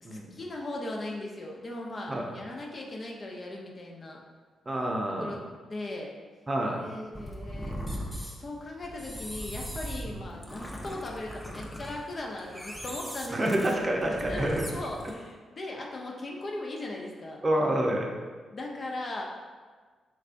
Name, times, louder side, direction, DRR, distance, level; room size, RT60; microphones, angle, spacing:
voice 1, 0.0-4.2 5.2-6.1 6.8-7.8 8.2-13.5 14.3-17.4 18.5-19.2, left 2 dB, 45° left, -1 dB, 0.6 m, -38 dB
voice 2, 4.7-5.4 6.5-6.8 10.1-10.2 13.3-14.6 17.4-18.1, right 1 dB, 35° right, 0 dB, 0.6 m, -28 dB
sound 1, 7.1-15.1, equal, 5° left, 0.7 m, -39 dB
3.3 x 3.3 x 2.5 m, 1.5 s
supercardioid pair, 50°, 0 cm